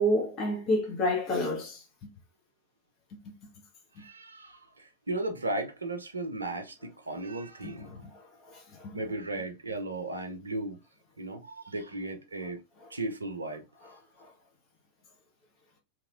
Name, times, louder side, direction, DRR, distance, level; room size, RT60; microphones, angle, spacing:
voice 1, 0.0-1.8 3.2-3.3 7.6-9.0 14.2-14.3, equal, 35° left, 1.0 m, -30 dB
voice 2, 4.0-7.9 8.9-10.8 11.2-12.6 12.9-13.6, right 2 dB, 75° right, 0.7 m, -35 dB
3.0 x 2.9 x 2.5 m
figure-of-eight pair, 90°, 0 cm